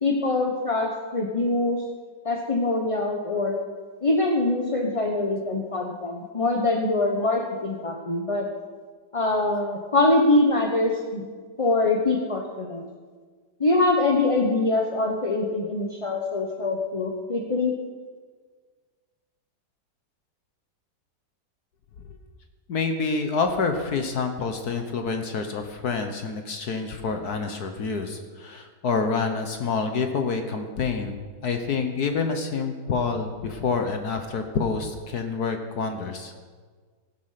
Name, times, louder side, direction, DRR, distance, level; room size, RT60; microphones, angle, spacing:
voice 1, 0.0-1.8 2.2-3.6 4.0-8.5 9.1-11.3 11.6-12.8 13.6-17.7, left 2 dB, 25° left, 1 dB, 0.9 m, -24 dB
voice 2, 22.7-36.3, left 4 dB, 60° left, 6 dB, 1.5 m, -27 dB
15.0 x 11.5 x 5.8 m, 1.6 s
omnidirectional pair, 2.0 m